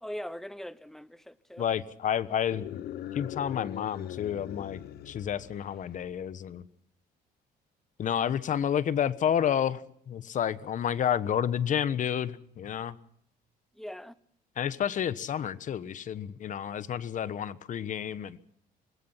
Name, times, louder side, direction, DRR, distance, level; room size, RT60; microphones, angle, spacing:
voice 1, 0.0-1.6 13.8-14.1, equal, ahead, 0.9 m, -41 dB
voice 2, 1.6-2.8 3.1-4.8 5.1-6.7 8.0-13.0 14.6-18.4, left 9 dB, 50° left, 1.3 m, -30 dB
sound 1, 2.4-6.0, left 12 dB, 70° left, 1.3 m, -41 dB
26.0 x 20.5 x 5.8 m
cardioid pair, 110°, 17 cm